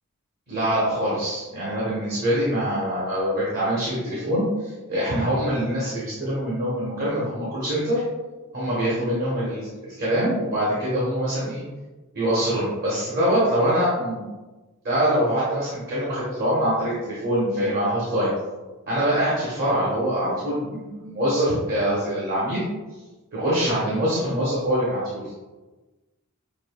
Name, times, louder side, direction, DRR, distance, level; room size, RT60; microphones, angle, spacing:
voice 1, 0.5-8.0 8.5-11.6 12.1-14.3 14.8-18.3 18.9-22.6 23.3-25.2, equal, 45° right, -8 dB, 1.1 m, -24 dB
6.3 x 2.7 x 2.2 m, 1.2 s
head